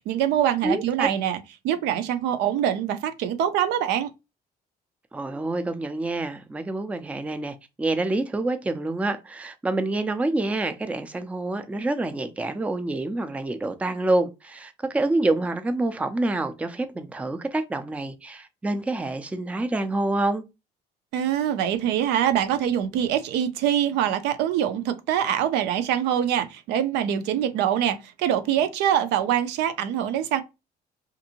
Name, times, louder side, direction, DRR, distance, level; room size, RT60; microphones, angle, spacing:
voice 1, 0.0-1.4 1.6-4.1 21.1-30.4, right 10 dB, 85° right, 0.5 m, -24 dB
voice 2, 0.6-1.1 5.1-20.4, right 2 dB, 10° right, 0.4 m, -27 dB
2.6 x 2.5 x 2.8 m
cardioid pair, 110°, 17 cm